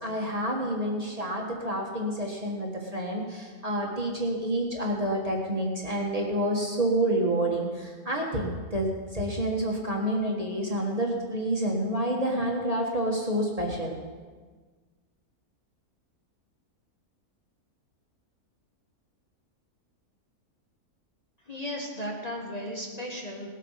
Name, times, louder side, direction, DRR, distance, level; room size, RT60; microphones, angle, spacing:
voice 1, 0.0-14.0, right 1 dB, 25° right, -1 dB, 1.7 m, -28 dB
voice 2, 21.4-23.5, equal, 25° left, -2 dB, 1.5 m, -35 dB
18.5 x 8.2 x 5.8 m, 1.5 s
omnidirectional pair, 1.6 m